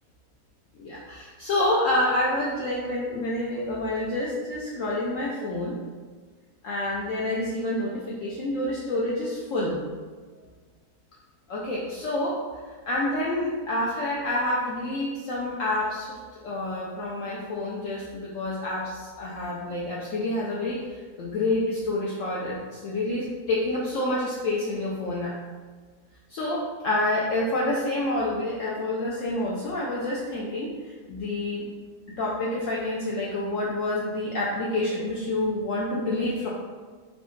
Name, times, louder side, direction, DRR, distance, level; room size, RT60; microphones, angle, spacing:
voice 1, 0.7-5.8 6.6-9.8 11.5-12.4 12.7-25.3 26.3-31.7 32.2-36.5, left 1 dB, 65° left, -5 dB, 0.8 m, -28 dB
4.1 x 2.3 x 3.0 m, 1.5 s
omnidirectional pair, 1.7 m